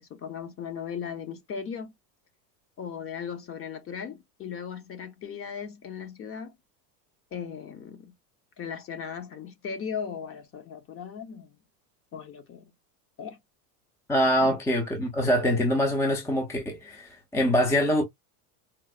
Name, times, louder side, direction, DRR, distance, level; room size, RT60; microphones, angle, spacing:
voice 1, 0.0-1.9 2.8-6.6 7.3-8.1 8.6-11.6 12.1-12.7 13.2-13.4 14.4-14.6, left 7 dB, 30° left, 0.9 m, -37 dB
voice 2, 14.1-18.0, equal, 5° left, 0.6 m, -24 dB
4.4 x 2.0 x 2.4 m
supercardioid pair, 125°, 47 cm